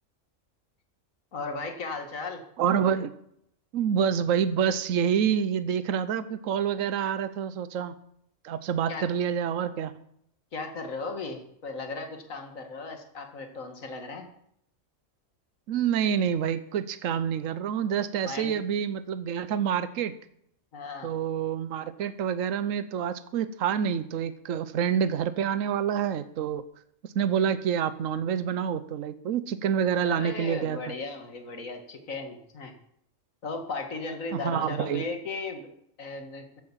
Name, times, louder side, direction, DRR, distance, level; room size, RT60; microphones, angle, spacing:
voice 1, 1.3-2.4 8.9-9.0 10.5-14.3 18.2-18.5 20.7-21.1 29.9-32.7 33.4-35.7 36.0-36.5, left 3 dB, 85° left, 5 dB, 2.3 m, -36 dB
voice 2, 2.6-3.1 3.7-8.0 8.4-9.9 15.7-20.1 21.0-26.6 27.1-30.8 34.3-35.0, right 8 dB, 80° right, 12 dB, 1.2 m, -27 dB
15.0 x 8.7 x 7.4 m, 0.72 s
omnidirectional pair, 1.4 m